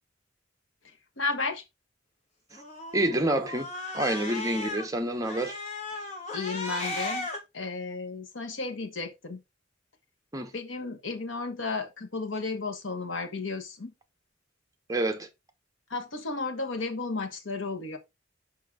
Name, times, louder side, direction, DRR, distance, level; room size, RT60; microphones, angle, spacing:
voice 1, 1.2-1.6 5.9-6.1 6.3-7.3 7.5-9.4 10.5-13.9 15.9-18.0, left 3 dB, 80° left, 1.3 m, -33 dB
Cat, 2.5-4.9 5.2-7.4, left 2 dB, 35° left, 1.8 m, -36 dB
voice 2, 2.9-3.7 3.9-5.6 10.3-10.5 14.9-15.3, right 1 dB, 20° right, 1.0 m, -27 dB
6.0 x 5.6 x 3.7 m
head